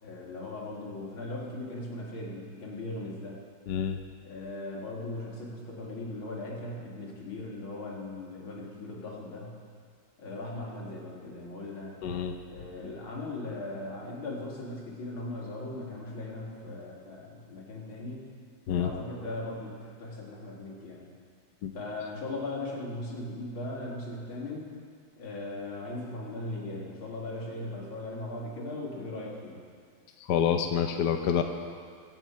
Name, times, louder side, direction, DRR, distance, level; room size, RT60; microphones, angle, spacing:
voice 1, 0.0-3.4 4.2-9.5 10.2-12.0 12.4-18.3 18.8-21.1 21.7-24.8 25.2-29.6, left 2 dB, 80° left, -3 dB, 3.1 m, -38 dB
voice 2, 3.7-4.0 12.0-12.3 18.7-18.9 21.6-21.7 30.3-31.4, left 8 dB, 65° left, 5 dB, 1.2 m, -27 dB
24.0 x 8.3 x 4.5 m, 2.1 s
omnidirectional pair, 2.2 m